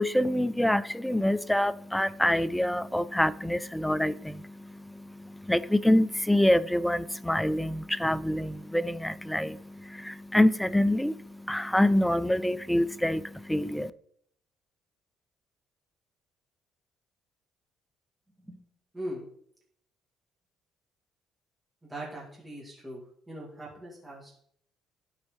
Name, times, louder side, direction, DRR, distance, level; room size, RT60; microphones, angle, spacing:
voice 1, 0.0-13.9, left 1 dB, 5° left, 0.3 m, -26 dB
voice 2, 21.8-23.0 23.3-24.3, right 1 dB, 15° right, 2.1 m, -40 dB
12.0 x 4.1 x 3.2 m
cardioid pair, 90°, 0 cm